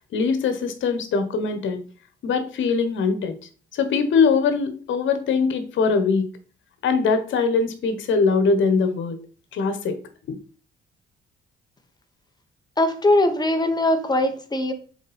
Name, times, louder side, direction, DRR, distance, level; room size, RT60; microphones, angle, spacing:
voice 1, 0.1-1.8 2.2-3.3 3.7-6.3 6.8-9.2 9.5-10.0 10.3-10.4, left 5 dB, 75° left, 9 dB, 1.4 m, -22 dB
voice 2, 12.8-14.7, left 1 dB, 20° left, 7 dB, 1.3 m, -21 dB
5.6 x 4.6 x 5.2 m, 0.40 s
cardioid pair, 90°, 20 cm